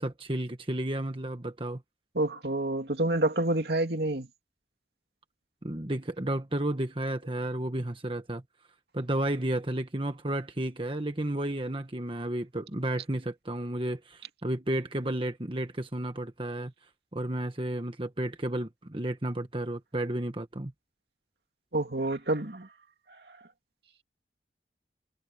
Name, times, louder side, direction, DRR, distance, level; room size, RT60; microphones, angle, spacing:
voice 1, 0.0-1.8 5.6-8.4 8.9-16.7 17.1-20.7, right 1 dB, 30° right, 1.4 m, -32 dB
voice 2, 2.1-4.3 21.7-22.7 23.3-23.4, right 2 dB, 70° right, 2.5 m, -28 dB
head